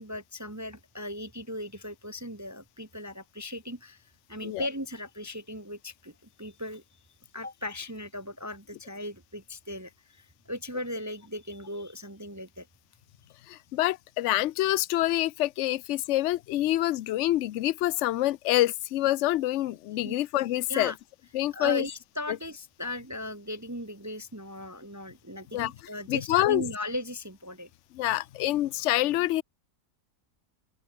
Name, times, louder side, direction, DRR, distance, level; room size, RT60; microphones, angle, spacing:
voice 1, 0.0-6.8 7.3-12.7 20.0-20.2 20.7-21.0 21.5-27.7, left 1 dB, 10° right, 1.2 m, -37 dB
voice 2, 13.5-20.9 21.3-21.8 25.5-25.7 26.1-26.6 27.9-29.4, left 15 dB, 70° left, 0.7 m, -26 dB
open air
omnidirectional pair, 1.7 m